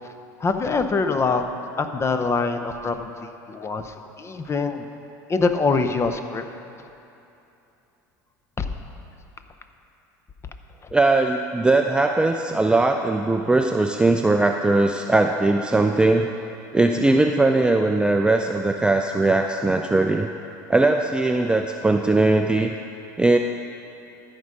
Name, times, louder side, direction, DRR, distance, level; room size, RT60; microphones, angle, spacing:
voice 1, 0.4-1.4 1.8-3.2 3.5-4.8 5.3-6.5 8.6-8.7, left 4 dB, 25° left, 8 dB, 0.7 m, -24 dB
voice 2, 10.9-16.3 16.7-20.3 20.7-22.7 23.2-23.4, right 2 dB, 10° right, 4 dB, 0.4 m, -20 dB
13.5 x 5.3 x 5.5 m, 2.9 s
hypercardioid pair, 80°, 10 cm